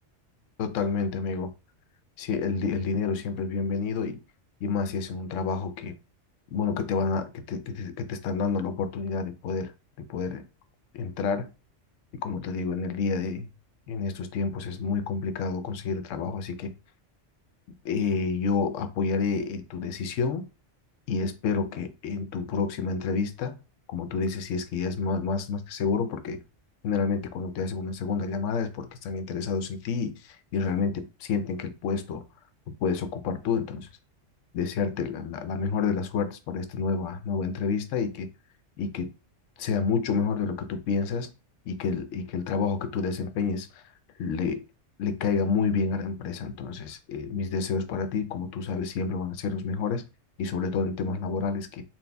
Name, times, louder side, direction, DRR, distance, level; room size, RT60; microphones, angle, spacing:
voice 1, 0.6-1.5 2.2-4.2 4.6-5.9 6.5-9.7 10.0-10.4 10.9-11.5 12.1-13.5 13.9-16.7 17.8-20.5 21.1-23.6 23.9-26.4 26.8-32.2 32.7-33.9 34.5-38.3 38.8-39.1 39.6-41.3 41.7-43.8 44.2-44.6 45.0-50.0 50.4-51.8, left 5 dB, 85° left, 1.0 m, -29 dB
4.1 x 2.4 x 3.3 m
omnidirectional pair, 1.2 m